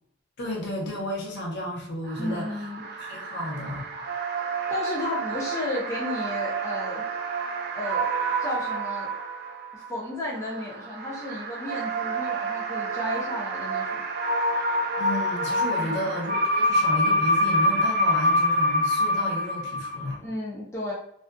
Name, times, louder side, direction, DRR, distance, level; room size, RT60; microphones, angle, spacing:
voice 1, 0.4-2.7 3.0-3.9 15.0-20.2, equal, 55° left, -2 dB, 0.7 m, -32 dB
sound 1, 2.1-9.9 10.4-20.2, equal, 50° right, 0.3 m, -27 dB
voice 2, 2.2-2.8 4.7-7.0 7.7-8.1 8.4-9.1 9.7-14.0 15.8-16.0 20.2-20.9, left 2 dB, 15° left, -6 dB, 0.4 m, -33 dB
2.5 x 2.4 x 2.2 m, 0.72 s
head